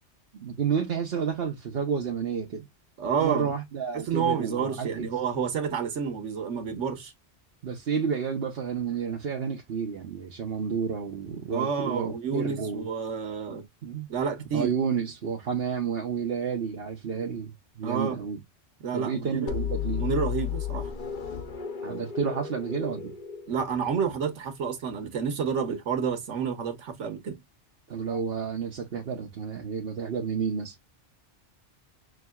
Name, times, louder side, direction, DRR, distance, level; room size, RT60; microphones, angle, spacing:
voice 1, 0.3-2.7 3.2-5.1 7.6-12.9 13.8-14.1 14.5-18.4 18.9-20.1 21.8-23.1 27.9-30.7, right 6 dB, 60° right, 1.1 m, -30 dB
voice 2, 3.0-3.5 3.9-7.1 11.5-13.7 14.1-14.7 17.8-18.2 18.8-19.6 20.0-20.9 23.5-27.4, right 6 dB, 80° right, 1.3 m, -29 dB
sound 1, 19.5-24.2, left 9 dB, 50° left, 0.8 m, -33 dB
6.0 x 2.7 x 2.3 m
omnidirectional pair, 1.2 m